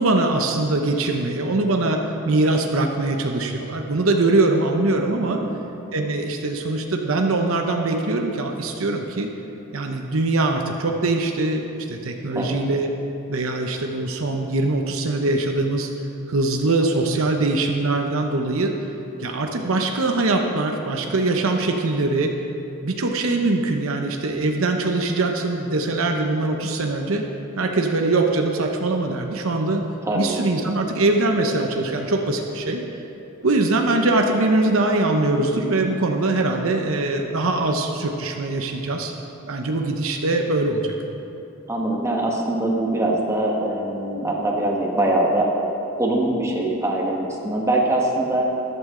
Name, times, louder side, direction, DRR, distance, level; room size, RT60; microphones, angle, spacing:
voice 1, 0.0-5.4 5.9-9.3 9.7-12.9 13.3-15.9 16.3-18.8 19.2-22.4 22.8-27.2 27.6-29.8 30.1-32.9 33.4-39.1 39.5-40.9, right 2 dB, 65° right, 3 dB, 0.8 m, -22 dB
voice 2, 5.2-5.5 12.3-12.6 30.0-30.3 41.7-45.5 46.0-48.5, right 1 dB, 15° right, -2 dB, 1.5 m, -23 dB
14.0 x 12.0 x 3.8 m, 3.0 s
head